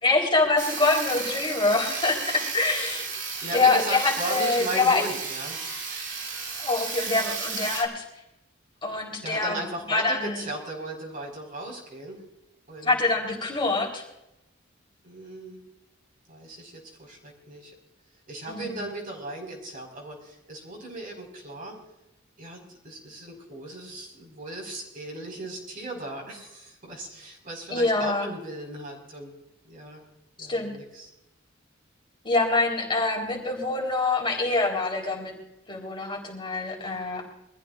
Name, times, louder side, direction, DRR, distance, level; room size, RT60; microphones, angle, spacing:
voice 1, 0.0-3.1 3.5-5.0 6.6-8.0 8.8-9.6 9.9-10.4 12.8-14.0 18.5-18.6 27.7-28.3 30.4-30.7 32.2-35.3 35.7-37.2, left 3 dB, 25° left, -1 dB, 4.0 m, -25 dB
Sawing, 0.6-7.8, right 5 dB, 65° right, 2.9 m, -33 dB
voice 2, 3.4-5.6 9.2-12.2 12.7-13.0 15.0-15.6 16.3-17.7 18.3-21.8 22.4-29.3 29.6-30.0 30.4-31.1, right 1 dB, 45° right, 0 dB, 5.1 m, -37 dB
24.0 x 14.5 x 2.5 m, 0.88 s
head